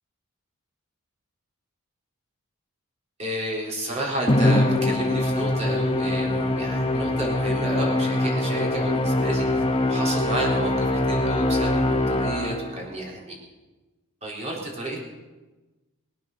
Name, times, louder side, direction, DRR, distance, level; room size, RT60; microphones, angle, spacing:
voice 1, 3.2-13.4 14.2-15.0, right 1 dB, 30° right, -3 dB, 4.0 m, -31 dB
Musical instrument, 4.3-12.8, left 1 dB, 25° left, 1.2 m, -23 dB
21.0 x 9.2 x 6.7 m, 1.2 s
head